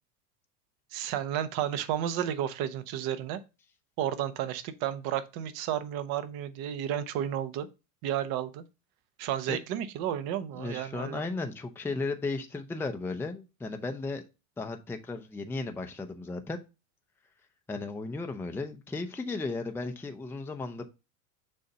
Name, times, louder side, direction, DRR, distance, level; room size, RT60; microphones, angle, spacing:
voice 1, 0.9-3.4 4.0-7.7 8.0-8.6 9.2-11.2, right 10 dB, 50° right, 1.0 m, -32 dB
voice 2, 10.6-14.2 14.6-16.6 17.7-20.8, left 3 dB, 5° left, 0.5 m, -35 dB
6.8 x 2.7 x 5.4 m
hypercardioid pair, 100°, 45 cm